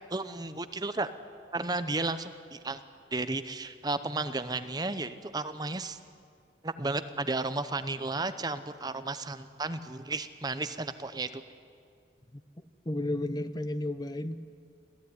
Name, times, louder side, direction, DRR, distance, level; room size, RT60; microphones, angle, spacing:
voice 1, 0.1-1.1 1.5-2.8 3.1-6.0 6.6-11.4, right 3 dB, 20° right, 11 dB, 0.7 m, -33 dB
voice 2, 12.9-14.4, left 1 dB, 20° left, 11 dB, 0.7 m, -32 dB
26.0 x 16.0 x 9.7 m, 2.3 s
head